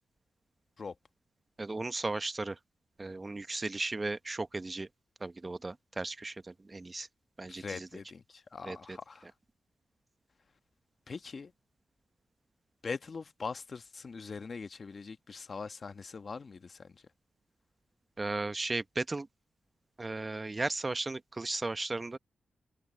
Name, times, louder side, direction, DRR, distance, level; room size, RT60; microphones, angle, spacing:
voice 1, 1.6-2.6 3.0-4.9 5.2-7.1 7.4-7.9 8.6-9.0 18.2-19.3 20.0-22.2, right 2 dB, 30° right, 0.9 m, -36 dB
voice 2, 7.5-9.3 11.1-11.5 12.8-17.0, left 4 dB, 50° left, 1.2 m, -42 dB
cardioid pair, 70°, 0 cm